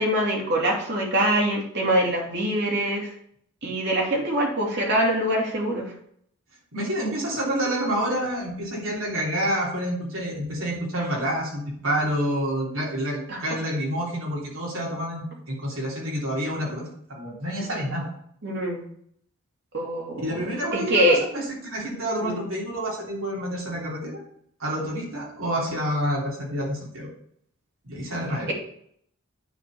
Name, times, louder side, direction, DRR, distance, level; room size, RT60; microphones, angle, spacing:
voice 1, 0.0-3.1 3.6-5.9 13.3-13.4 18.4-18.8 19.7-20.3 20.7-21.2 22.2-22.5 28.5-28.6, right 1 dB, 55° right, -1 dB, 2.8 m, -24 dB
voice 2, 6.7-16.8 17.1-18.1 20.2-24.1 24.6-27.1 27.8-28.5, equal, 70° right, -3 dB, 3.2 m, -28 dB
9.1 x 4.4 x 6.9 m, 0.66 s
head